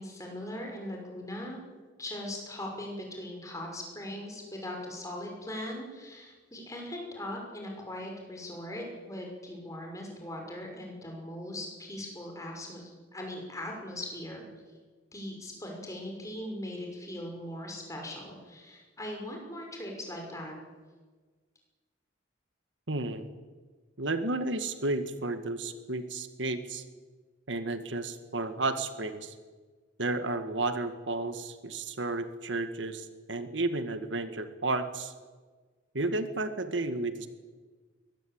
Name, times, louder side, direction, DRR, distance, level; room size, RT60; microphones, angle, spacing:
voice 1, 0.0-1.6 2.0-14.4 15.1-20.5, left 1 dB, 20° left, 1 dB, 6.2 m, -40 dB
voice 2, 22.9-23.3 24.0-26.8 27.5-29.4 30.0-35.1 35.9-37.3, right 2 dB, 80° right, 9 dB, 1.7 m, -32 dB
22.5 x 19.0 x 8.8 m, 1.4 s
head